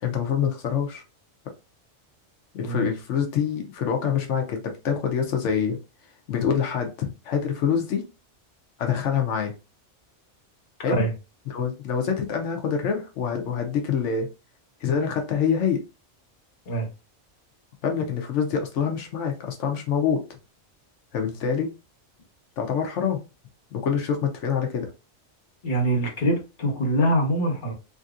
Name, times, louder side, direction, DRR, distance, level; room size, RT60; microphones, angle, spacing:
voice 1, 0.0-1.0 2.5-5.8 6.3-8.0 8.8-9.5 10.8-11.0 11.5-14.3 14.8-15.8 17.8-20.2 21.1-21.7 22.6-23.2 23.7-24.9, left 7 dB, 90° left, 1.0 m, -25 dB
voice 2, 2.6-2.9 10.9-11.1 16.7-16.9 25.6-27.7, right 1 dB, 45° left, 1.2 m, -24 dB
3.4 x 2.6 x 2.4 m
omnidirectional pair, 1.2 m